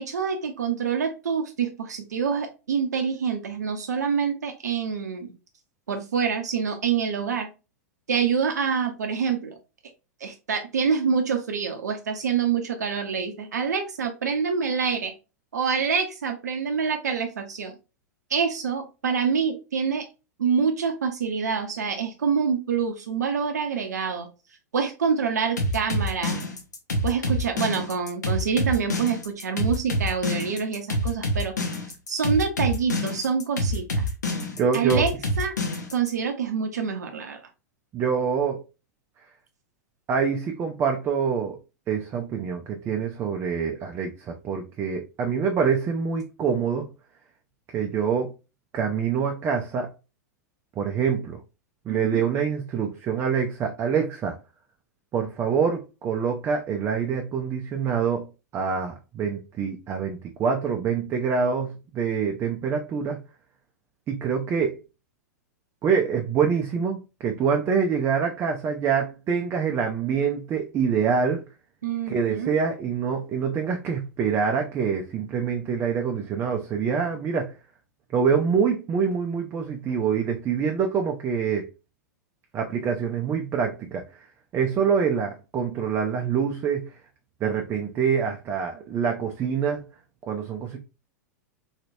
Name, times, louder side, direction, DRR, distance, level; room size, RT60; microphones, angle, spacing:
voice 1, 0.0-5.3 5.9-7.5 8.1-9.6 10.2-15.1 15.5-17.7 18.3-20.1 20.4-24.3 24.7-26.4 27.0-31.5 32.1-34.0 34.7-35.5 35.9-37.4 51.9-52.2 71.8-72.6, right 6 dB, 70° right, 0.6 m, -26 dB
sound 1, 25.6-36.1, left 1 dB, 75° left, 0.9 m, -26 dB
voice 2, 34.5-35.1 37.9-38.6 40.1-41.6 41.9-46.9 47.7-48.3 48.7-49.9 50.8-51.4 51.9-54.4 55.1-58.3 58.5-63.2 64.1-64.8 65.8-71.4 72.1-77.5 78.1-81.7 82.5-84.0 84.5-86.9 87.4-89.9 90.2-90.8, right 6 dB, 25° right, 0.5 m, -25 dB
3.2 x 2.9 x 2.7 m
figure-of-eight pair, 95°, 9 cm